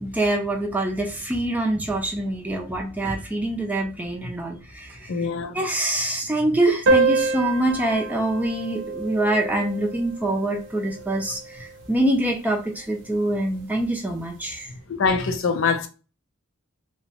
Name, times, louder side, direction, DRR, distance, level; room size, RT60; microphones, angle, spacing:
voice 1, 0.0-5.1 5.5-14.7 15.7-15.8, right 1 dB, 10° right, 0.5 m, -25 dB
voice 2, 5.1-5.5 14.9-15.9, left 5 dB, 60° left, 0.5 m, -23 dB
sound 1, 6.9-11.8, right 3 dB, 60° right, 0.7 m, -26 dB
2.8 x 2.1 x 2.7 m
head